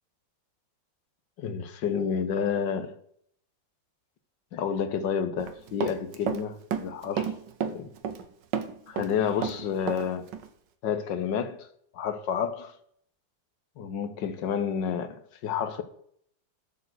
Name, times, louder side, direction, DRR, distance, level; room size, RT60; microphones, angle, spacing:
voice 1, 1.4-3.0 4.5-7.3 7.6-7.9 8.9-10.3 10.8-11.7 11.9-12.7 13.8-15.8, left 7 dB, 75° left, 1.6 m, -30 dB
Run, 5.4-6.4 6.7-8.3 8.5-10.1 10.3-10.5, right 8 dB, 70° right, 1.5 m, -31 dB
12.5 x 4.6 x 7.7 m
omnidirectional pair, 2.1 m